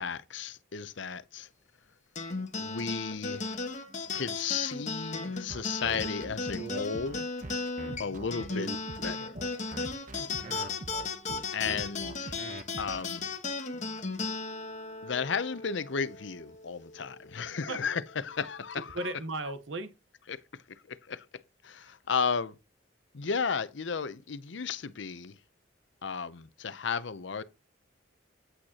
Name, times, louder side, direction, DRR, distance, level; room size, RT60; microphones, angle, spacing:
voice 1, 0.0-1.5 2.6-3.6 4.1-7.3 8.0-8.7 9.0-9.4 11.5-12.4 12.8-13.3 15.0-19.0 20.3-21.2 21.6-22.5 23.1-25.4 26.0-27.4, left 6 dB, 65° left, 0.6 m, -34 dB
sound 1, 2.1-16.9, left 3 dB, 40° left, 1.2 m, -36 dB
sound 2, 5.5-13.0, right 2 dB, 40° right, 0.9 m, -42 dB
voice 2, 7.8-8.2 10.2-10.6 17.7-17.8 18.7-19.9 21.8-21.9, right 2 dB, 75° right, 1.0 m, -38 dB
8.8 x 8.0 x 2.9 m
head